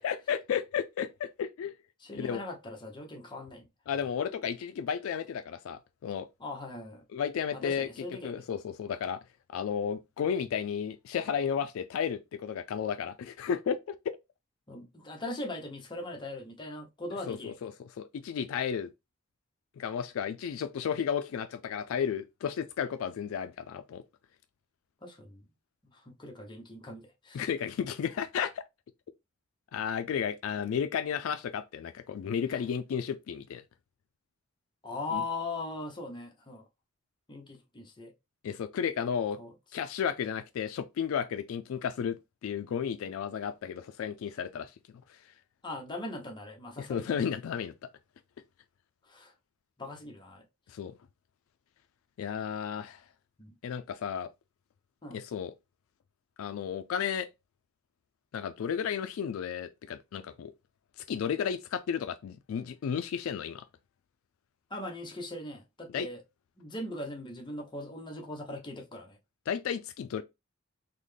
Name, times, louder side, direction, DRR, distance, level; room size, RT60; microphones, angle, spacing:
voice 1, 0.0-1.8 2.1-2.4 3.9-6.3 7.1-7.9 8.2-9.2 9.5-14.0 17.3-18.9 19.8-24.0 27.3-28.6 29.7-33.6 35.1-35.2 38.4-39.4 39.7-44.7 45.1-45.2 46.8-47.7 50.7-51.0 52.2-53.0 53.6-54.3 55.1-55.5 56.4-57.3 58.3-60.5 61.1-63.7 65.9-66.1 69.5-70.2, left 7 dB, 75° left, 0.3 m, -33 dB
voice 2, 2.0-3.7 6.4-7.0 7.5-8.4 14.7-17.6 25.0-25.4 25.8-27.5 32.5-32.6 34.8-36.6 37.3-38.1 39.4-39.5 45.6-47.0 49.0-49.3 49.8-50.4 53.4-53.5 55.0-55.2 64.7-66.2 66.6-69.2, left 2 dB, 25° left, 0.8 m, -40 dB
3.8 x 2.1 x 3.2 m
head